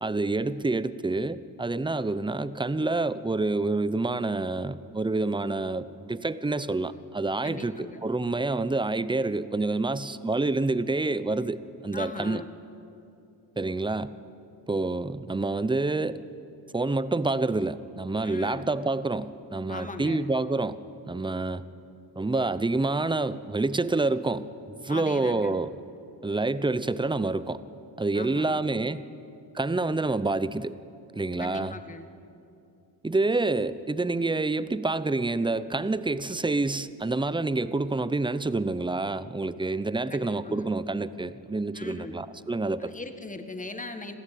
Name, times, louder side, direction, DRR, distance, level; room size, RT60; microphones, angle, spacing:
voice 1, 0.0-12.4 13.6-14.1 14.7-16.2 16.7-20.8 21.1-21.6 22.2-24.5 24.8-25.7 26.2-27.6 28.0-29.0 29.5-30.8 31.1-31.8 33.0-42.9, right 2 dB, 10° right, 15 dB, 0.8 m, -27 dB
voice 2, 7.4-8.0 11.9-12.5 18.2-18.7 19.7-20.2 24.9-25.6 28.1-28.6 31.4-32.1 40.1-40.7 41.7-42.1 42.8-44.2, left 3 dB, 20° left, 8 dB, 1.8 m, -39 dB
26.0 x 15.5 x 9.4 m, 2.7 s
cardioid pair, 100°, 42 cm